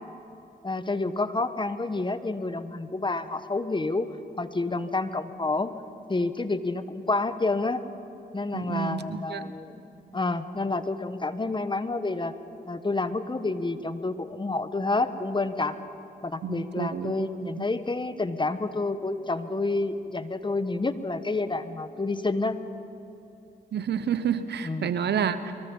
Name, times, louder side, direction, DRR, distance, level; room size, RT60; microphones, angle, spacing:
voice 1, 0.6-4.1 4.4-5.8 6.1-7.8 8.3-9.8 10.1-12.3 12.7-15.8 16.2-22.6 24.6-24.9, left 3 dB, 25° left, 11 dB, 1.3 m, -29 dB
voice 2, 8.5-9.4 16.4-17.3 17.6-17.7 23.7-25.5, right 7 dB, 70° right, 12 dB, 1.1 m, -29 dB
24.0 x 22.5 x 5.6 m, 2.8 s
supercardioid pair, 50°, 18 cm